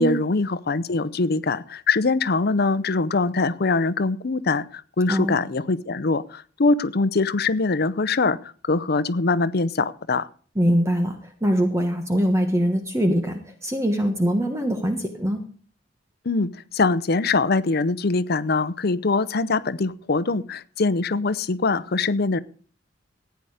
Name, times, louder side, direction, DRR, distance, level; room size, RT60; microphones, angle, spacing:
voice 1, 0.0-10.3 16.2-22.4, left 3 dB, 55° left, 15 dB, 0.7 m, -23 dB
voice 2, 10.5-15.5, equal, 15° right, 5 dB, 1.3 m, -23 dB
15.0 x 9.4 x 5.0 m, 0.44 s
head